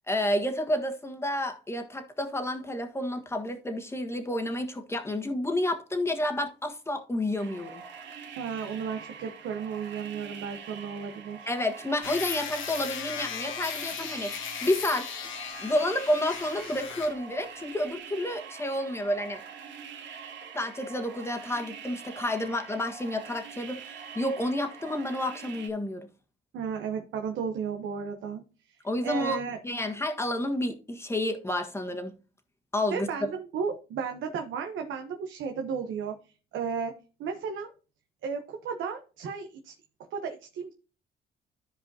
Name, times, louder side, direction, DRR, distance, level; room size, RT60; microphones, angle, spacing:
voice 1, 0.1-7.8 11.5-15.1 15.6-19.4 20.5-26.1 28.8-29.4 29.6-32.1 32.7-33.1, left 1 dB, 15° left, 1.4 m, -30 dB
sound 1, 7.4-25.7, right 7 dB, 65° right, 2.2 m, -45 dB
voice 2, 8.4-11.5 26.5-28.4 28.7-28.8 29.0-29.6 32.9-36.2 36.5-36.9 37.2-37.7 38.2-39.7 40.1-40.7, right 6 dB, 80° right, 1.0 m, -34 dB
sound 2, 12.0-17.2, left 8 dB, 80° left, 1.1 m, -37 dB
13.5 x 4.9 x 2.8 m
cardioid pair, 90°, 20 cm